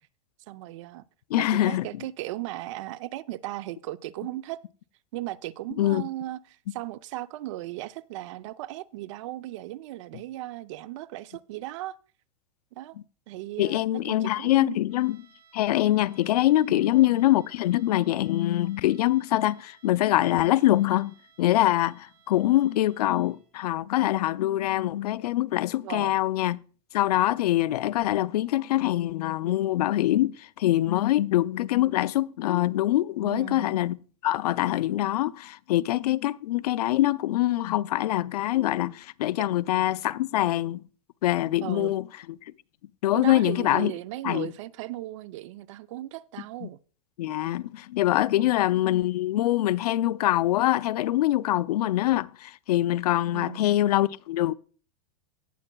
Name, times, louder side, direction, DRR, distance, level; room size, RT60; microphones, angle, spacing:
voice 1, 0.5-1.0 1.4-4.6 5.1-6.4 6.7-12.0 12.8-13.0 13.3-14.8 16.7-17.0 25.8-26.2 33.2-33.8 41.6-41.9 43.1-46.8 48.4-48.5 53.3-53.8, right 16 dB, 55° right, 0.5 m, -37 dB
voice 2, 1.3-1.9 5.8-6.0 13.6-15.2 15.5-26.6 26.9-34.0 34.2-40.8 41.2-42.1 43.0-43.9 44.2-44.5 46.6-46.7 47.2-54.5, left 14 dB, 90° left, 0.4 m, -24 dB
sound 1, 14.9-23.6, right 7 dB, 80° right, 3.4 m, -60 dB
17.5 x 7.5 x 2.2 m
supercardioid pair, 160°, 19 cm